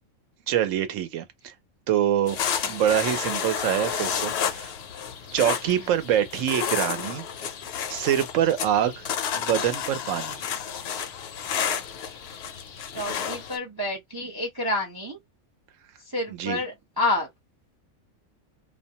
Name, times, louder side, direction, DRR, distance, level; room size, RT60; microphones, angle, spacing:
voice 1, 0.5-1.5 1.9-2.4 2.7-4.7 5.3-7.3 7.9-9.0 9.3-10.4 16.3-16.6, right 10 dB, 70° right, 1.0 m, -25 dB
sound 1, 2.3-13.6, left 8 dB, 65° left, 0.7 m, -31 dB
voice 2, 12.9-15.2 16.0-17.3, left 2 dB, 30° right, 0.4 m, -29 dB
2.4 x 2.2 x 2.7 m
omnidirectional pair, 1.4 m